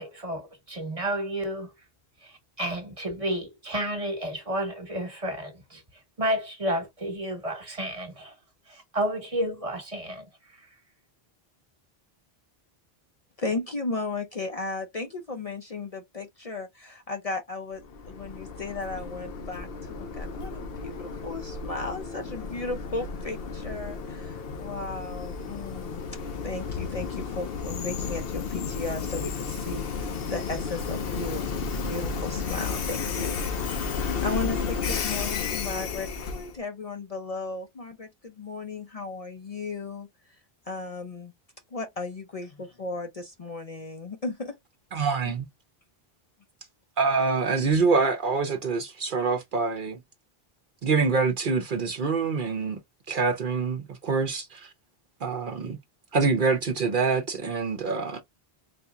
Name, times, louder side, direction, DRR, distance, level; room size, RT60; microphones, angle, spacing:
voice 1, 0.0-1.7 2.2-5.8 6.2-8.3 8.7-10.3, right 1 dB, 35° right, 1.2 m, -31 dB
voice 2, 13.4-26.0 26.4-31.5 31.9-40.1 40.7-41.3 41.7-44.6 45.2-45.3, left 3 dB, 45° left, 0.6 m, -35 dB
Train, 17.8-36.6, left 5 dB, 70° left, 0.9 m, -33 dB
voice 3, 44.9-45.5 47.0-50.0 50.8-52.8 53.1-54.7 55.2-55.8 56.1-58.2, right 4 dB, 55° right, 0.8 m, -25 dB
4.3 x 2.8 x 2.3 m
omnidirectional pair, 1.0 m